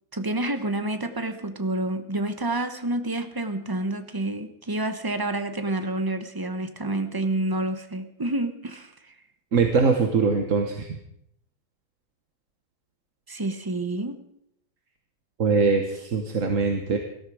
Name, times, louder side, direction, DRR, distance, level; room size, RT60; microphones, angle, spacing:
voice 1, 0.1-9.1 13.3-14.2, right 2 dB, 20° right, 8 dB, 0.7 m, -28 dB
voice 2, 9.5-10.9 15.4-17.0, right 4 dB, 45° right, 5 dB, 1.4 m, -22 dB
19.0 x 13.5 x 4.9 m, 0.74 s
omnidirectional pair, 2.1 m